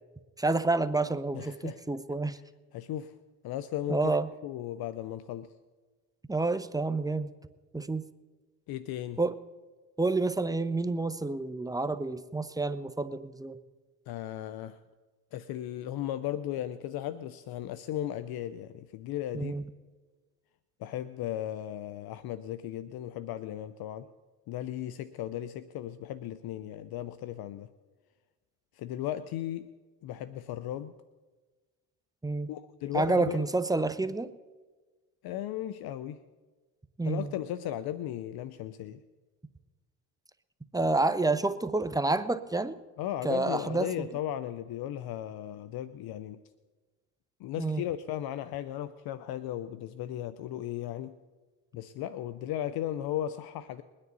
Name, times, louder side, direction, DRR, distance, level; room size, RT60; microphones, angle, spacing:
voice 1, 0.4-2.4 3.9-4.3 6.3-7.3 7.7-8.0 9.2-9.4 10.0-13.6 19.3-19.6 32.2-32.5 32.9-34.3 37.0-37.3 40.7-42.8 43.2-44.1 47.6-47.8, right 3 dB, 10° right, 12 dB, 0.7 m, -29 dB
voice 2, 1.3-1.8 2.7-3.1 3.4-4.2 4.4-5.5 8.7-9.2 14.1-14.8 15.3-19.5 20.8-24.1 24.5-27.7 28.8-29.7 30.0-30.9 32.5-33.4 35.2-36.2 37.0-39.0 43.0-46.4 47.4-51.1 51.7-53.8, left 12 dB, 65° left, 14 dB, 0.7 m, -36 dB
21.5 x 9.8 x 4.0 m, 1.3 s
supercardioid pair, 75°, 40 cm